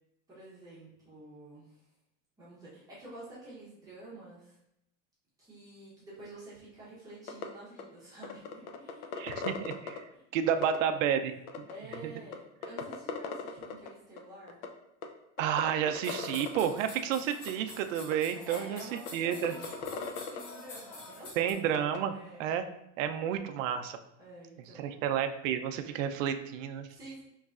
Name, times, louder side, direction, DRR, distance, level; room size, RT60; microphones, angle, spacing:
voice 1, 0.3-1.9 2.4-4.6 5.4-9.2 10.1-10.2 10.5-11.2 11.7-14.6 18.5-21.6 22.1-22.5 24.2-25.0 26.9-27.2, right 1 dB, 10° right, -10 dB, 0.8 m, -49 dB
sound 1, 7.3-7.4 7.8-7.9 8.2-10.0 10.6-10.8 11.5-12.0 12.3-12.4 12.6-13.9 14.2-14.3 14.5-14.7 15.0-15.1 15.4-16.7 17.5-17.6 18.1-18.2 18.6-18.7 19.1-19.2 19.4-20.4 21.7-22.0, left 6 dB, 50° left, 0.4 m, -37 dB
voice 2, 9.2-10.0 10.3-11.6 12.0-12.1 15.4-19.5 21.4-22.1 22.4-22.6 23.0-24.0 24.8-26.9, right 9 dB, 80° right, 8 dB, 0.5 m, -31 dB
sound 2, 15.9-21.5, left 2 dB, 80° left, 1.2 m, -47 dB
5.4 x 3.1 x 2.4 m, 0.81 s
supercardioid pair, 175°, 38 cm